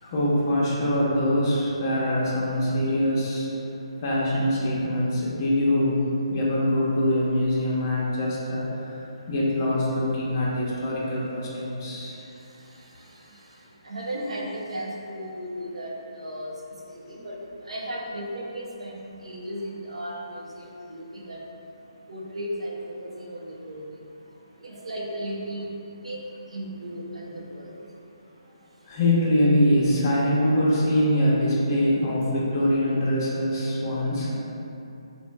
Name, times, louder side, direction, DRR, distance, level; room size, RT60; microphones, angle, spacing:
voice 1, 0.0-3.5 4.0-6.0 6.3-12.2 28.9-34.4, left 1 dB, 35° left, -6 dB, 0.6 m, -23 dB
voice 2, 13.8-16.5 17.1-17.4 17.7-21.4 22.1-23.8 24.6-25.7 26.0-26.2 26.5-27.7, equal, 85° right, -2 dB, 0.5 m, -35 dB
2.9 x 2.1 x 3.3 m, 2.8 s
hypercardioid pair, 155°, 3 cm